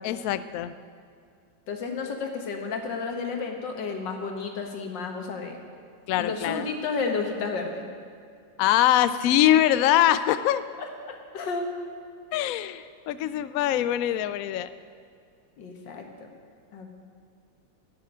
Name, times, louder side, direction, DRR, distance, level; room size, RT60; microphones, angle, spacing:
voice 1, 0.0-0.7 6.1-6.7 8.6-10.6 12.3-14.7, left 12 dB, 85° left, 13 dB, 0.7 m, -23 dB
voice 2, 1.7-5.6 6.2-7.9 10.8-11.7 15.6-16.3 16.7-16.9, left 4 dB, 70° left, 4 dB, 2.0 m, -32 dB
12.0 x 6.9 x 8.9 m, 2.3 s
omnidirectional pair, 2.0 m